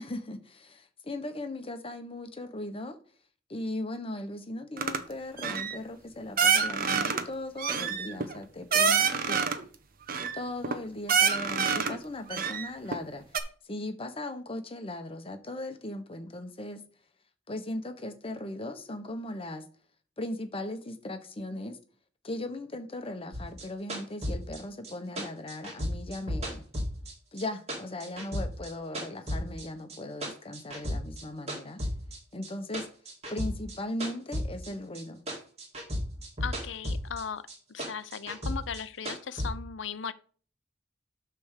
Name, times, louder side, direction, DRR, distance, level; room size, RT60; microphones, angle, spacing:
voice 1, 0.0-3.0 3.5-9.4 10.3-13.2 13.7-16.8 17.5-19.6 20.2-21.8 22.2-26.6 27.3-31.8 32.3-32.9 33.3-35.2, left 1 dB, 30° left, 1.0 m, -38 dB
sound 1, 4.8-5.0 5.4-5.8 6.4-7.2 7.6-9.6 10.1-10.7 11.1-12.0 12.3-13.0 13.3-13.4, right 6 dB, 50° right, 0.8 m, -26 dB
sound 2, 23.3-27.4 27.7-29.6 29.9-31.2 31.5-35.0 35.3-37.2 37.5-39.5, equal, 35° right, 2.2 m, -34 dB
voice 2, 36.4-37.4 37.7-40.1, left 7 dB, 85° left, 0.6 m, -37 dB
9.2 x 3.4 x 6.6 m
head